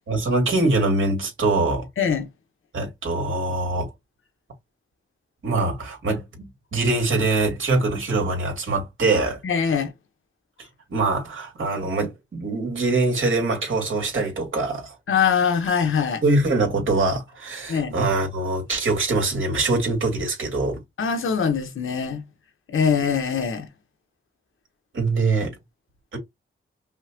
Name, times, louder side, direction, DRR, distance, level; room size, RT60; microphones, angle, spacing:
voice 1, 0.1-1.9 2.7-3.9 5.4-9.4 10.9-15.0 16.2-20.8 24.9-25.5 26.1-26.2, right 3 dB, 75° right, 2.6 m, -23 dB
voice 2, 2.0-2.3 9.4-9.9 15.1-16.2 17.7-18.0 21.0-22.2 22.7-23.7, left 6 dB, 85° left, 1.2 m, -22 dB
5.5 x 2.5 x 2.9 m
cardioid pair, 60°, 21 cm